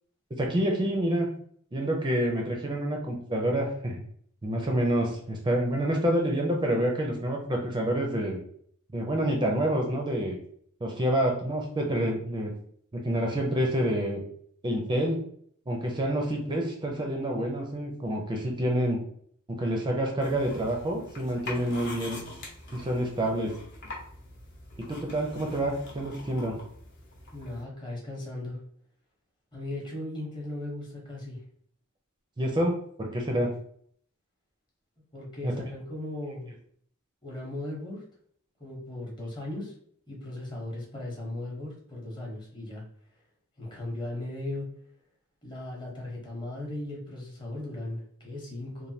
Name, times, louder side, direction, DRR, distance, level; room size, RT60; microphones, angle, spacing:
voice 1, 0.3-1.3 1.7-4.0 4.4-8.4 8.9-10.4 10.8-12.5 12.9-14.2 14.6-15.2 15.7-19.0 19.5-22.2 22.7-23.5 24.8-26.6 32.4-33.5 35.4-35.5, right 1 dB, 20° right, 1 dB, 0.5 m, -28 dB
sound 1, 20.2-27.6, left 2 dB, 55° left, 0.9 m, -44 dB
voice 2, 27.3-28.6 29.5-31.4 35.1-36.6 37.2-38.0 38.6-39.7 40.1-42.8 43.6-44.8 45.4-48.9, left 1 dB, 20° left, -3 dB, 0.9 m, -37 dB
3.2 x 2.2 x 2.7 m, 0.62 s
head